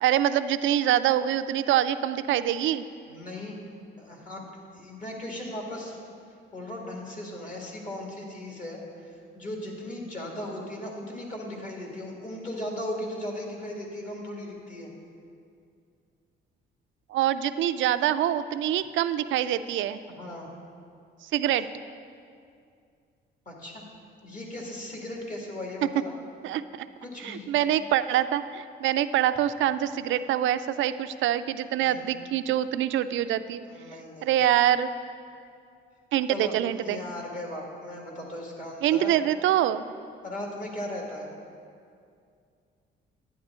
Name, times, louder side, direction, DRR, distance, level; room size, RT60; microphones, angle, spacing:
voice 1, 0.0-2.8 17.1-20.0 21.3-21.7 26.4-26.9 27.2-33.6 34.2-34.9 36.1-37.0 38.8-39.9, right 11 dB, 75° right, 12 dB, 0.4 m, -25 dB
voice 2, 3.1-3.6 4.0-4.4 4.7-6.0 6.5-14.9 20.1-20.5 23.5-23.8 24.2-26.1 27.0-27.5 31.8-32.1 33.7-34.3 36.3-36.5 36.8-39.1 40.2-41.3, left 1 dB, 40° left, -1 dB, 2.1 m, -37 dB
11.0 x 9.4 x 3.7 m, 2.4 s
cardioid pair, 90°, 20 cm